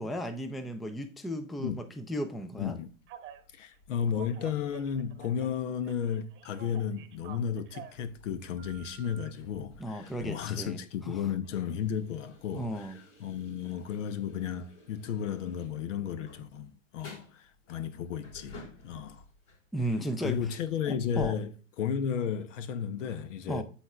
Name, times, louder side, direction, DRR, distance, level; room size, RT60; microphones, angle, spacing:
voice 1, 0.0-2.8 9.8-11.2 12.5-13.0 19.7-20.6 20.9-21.4 23.5-23.6, equal, ahead, 0.3 m, -35 dB
voice 2, 2.6-2.9 3.5-18.6 18.8-19.2 20.2-23.6, left 8 dB, 70° left, 0.9 m, -33 dB
sound 1, 2.8-19.9 20.2-21.3, left 2 dB, 55° left, 4.2 m, -54 dB
Telephone, 3.1-3.4 3.9-5.6 5.8-8.0 8.6-9.3, right 10 dB, 30° right, 1.0 m, -49 dB
13.0 x 4.4 x 2.4 m
hypercardioid pair, 105°, 38 cm